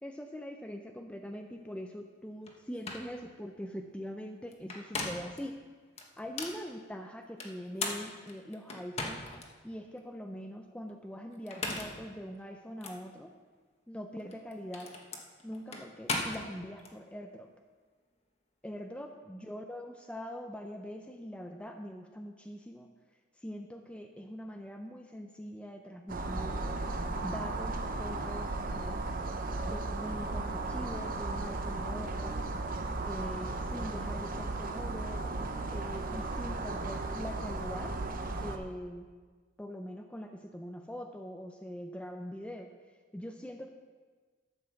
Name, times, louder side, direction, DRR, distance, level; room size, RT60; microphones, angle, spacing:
voice 1, 0.0-5.5 6.2-9.3 9.6-13.3 13.9-14.9 15.4-17.5 18.6-22.9 23.4-26.6 27.2-29.0 29.6-32.4 33.1-35.2 35.7-37.9 38.4-39.1 39.6-42.7 43.1-43.7, equal, 5° left, 4 dB, 0.5 m, -43 dB
sound 1, 2.5-2.6 2.8-3.1 4.5-5.4 6.0-6.6 7.4-9.5 10.0-10.1 11.3-12.0 12.8-13.0 14.2-16.9, left 3 dB, 35° left, 1.2 m, -38 dB
sound 2, 26.1-38.6, right 2 dB, 50° right, 0.8 m, -35 dB
12.0 x 5.4 x 7.0 m, 1.5 s
head